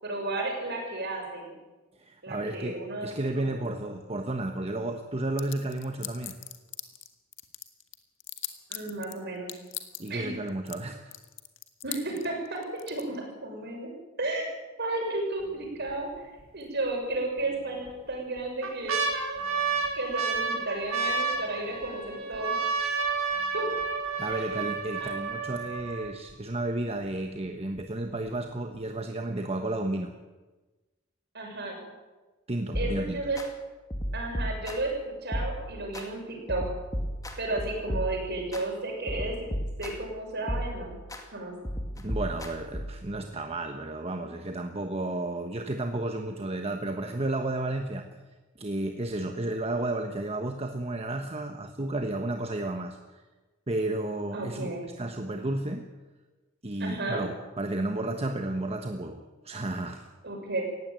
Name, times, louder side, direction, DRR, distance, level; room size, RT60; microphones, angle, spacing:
voice 1, 0.0-1.5 2.2-3.1 3.4-3.7 8.7-9.6 10.1-10.3 11.8-16.1 16.5-19.0 19.9-22.6 23.5-23.6 24.3-24.4 25.0-25.1 31.3-31.8 32.7-33.4 34.1-36.6 37.4-39.4 39.8-40.9 41.3-41.5 54.3-54.9 56.8-57.2 60.2-60.6, right 2 dB, 55° right, 1 dB, 6.6 m, -33 dB
voice 2, 2.0-6.4 10.0-11.0 24.2-30.1 32.5-33.2 41.9-48.1 48.6-53.2 53.7-55.8 56.6-60.0, right 2 dB, 30° right, 5 dB, 1.2 m, -32 dB
sound 1, 5.4-7.1 7.3-9.1 9.5-10.1 10.5-10.8 11.1-13.0, left 14 dB, 65° left, 1.8 m, -38 dB
sound 2, 15.4-15.9 16.4-16.5 17.4-17.9 18.4-26.3 27.0-27.1 27.3-27.8 28.3-28.4, right 4 dB, 80° right, 3.6 m, -31 dB
sound 3, 32.7-33.5 33.9-35.0 35.3-36.1 36.5-38.6 39.1-40.1 40.5-41.2 41.6-43.1, equal, 15° left, 2.4 m, -34 dB
18.5 x 16.0 x 9.0 m, 1.2 s
head